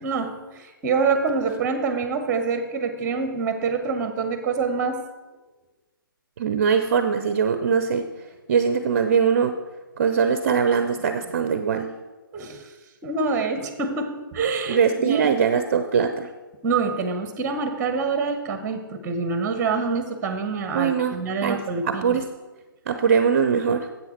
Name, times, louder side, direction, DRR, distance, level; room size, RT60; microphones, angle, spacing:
voice 1, 0.0-5.0 12.3-12.7 13.0-15.3 16.6-22.2, right 4 dB, 15° right, 9 dB, 0.8 m, -26 dB
voice 2, 6.4-8.0 8.5-9.5 10.0-11.9 14.7-16.3 20.7-21.2 21.4-22.3 22.9-23.9, right 6 dB, 40° right, 9 dB, 0.5 m, -21 dB
9.6 x 8.1 x 4.4 m, 1.2 s
figure-of-eight pair, 140°, 12 cm